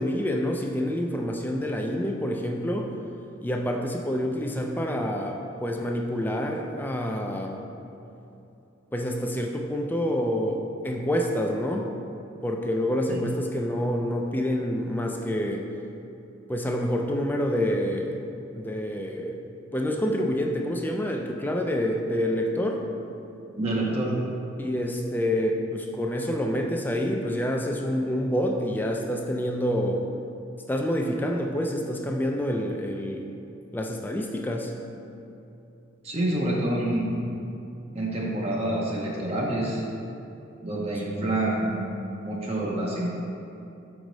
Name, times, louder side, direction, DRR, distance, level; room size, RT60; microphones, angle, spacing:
voice 1, 0.0-2.9 3.4-7.6 8.9-11.9 12.4-15.6 16.5-18.2 18.5-19.4 19.7-22.8 24.6-30.0 30.7-33.2 33.7-34.7, equal, 10° left, 2 dB, 0.4 m, -27 dB
voice 2, 23.6-24.1 36.0-37.2 37.9-39.8 40.6-43.2, right 1 dB, 30° right, -4 dB, 0.6 m, -27 dB
6.3 x 4.8 x 3.9 m, 2.8 s
head